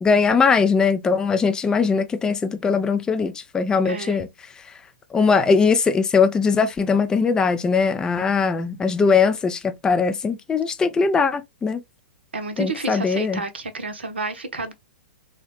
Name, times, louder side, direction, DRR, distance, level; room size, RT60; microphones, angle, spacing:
voice 1, 0.0-4.3 5.1-11.8 12.6-13.4, left 5 dB, 10° left, 0.4 m, -20 dB
voice 2, 3.8-4.3 12.3-14.7, right 3 dB, 75° right, 0.7 m, -30 dB
3.5 x 2.1 x 2.9 m
figure-of-eight pair, 105°, 6 cm